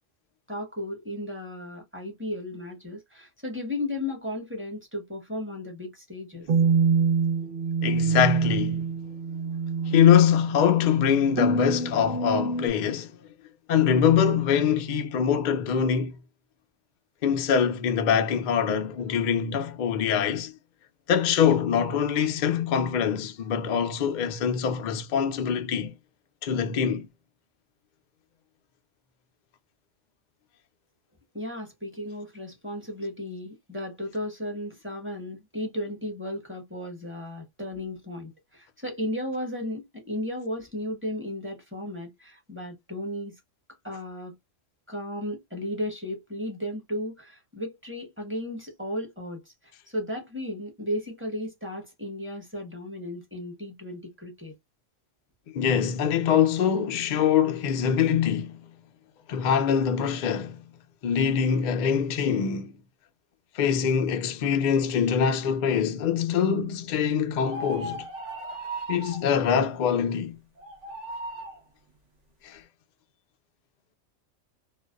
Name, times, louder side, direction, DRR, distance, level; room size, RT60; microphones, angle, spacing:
voice 1, 0.5-6.5 31.3-43.3 43.8-44.3 44.9-49.5 49.9-54.5, left 1 dB, 10° right, 0.8 m, -34 dB
sound 1, 6.5-12.7, right 5 dB, 55° right, 0.9 m, -26 dB
voice 2, 7.8-8.8 9.8-13.3 13.7-16.2 17.2-20.5 21.1-25.9 26.4-27.1 55.5-58.5 59.3-60.6 61.0-62.8 63.5-68.1 68.9-70.4 72.4-72.6, left 8 dB, 70° left, 0.4 m, -24 dB
sound 2, 67.4-69.3 70.6-71.6, right 1 dB, 75° right, 1.1 m, -36 dB
2.5 x 2.3 x 2.3 m
omnidirectional pair, 1.3 m